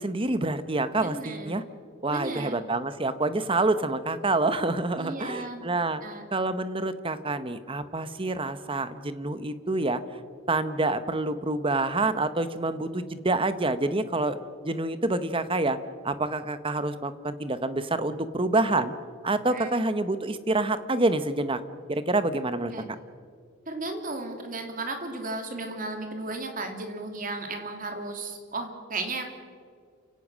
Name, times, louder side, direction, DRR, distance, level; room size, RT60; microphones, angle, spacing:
voice 1, 0.0-1.6 2.0-6.0 6.3-10.2 10.5-14.4 14.6-15.8 16.0-18.9 19.2-21.6 21.9-22.7, right 2 dB, 25° right, 12 dB, 1.0 m, -27 dB
voice 2, 1.0-1.6 2.1-2.7 5.0-5.7 6.0-6.2 19.5-19.8 22.7-22.9 23.7-29.2, right 2 dB, 40° right, 4 dB, 2.8 m, -35 dB
29.5 x 17.0 x 6.3 m, 2.1 s
head